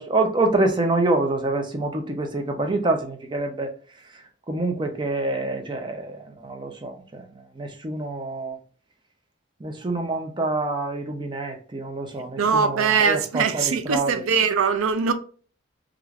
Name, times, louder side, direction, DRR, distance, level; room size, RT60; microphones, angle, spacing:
voice 1, 0.0-3.7 4.5-7.2 7.6-8.6 9.6-14.2, right 2 dB, 25° right, 0.4 m, -26 dB
voice 2, 12.4-15.1, right 6 dB, 85° right, 0.4 m, -21 dB
3.2 x 2.4 x 2.3 m
head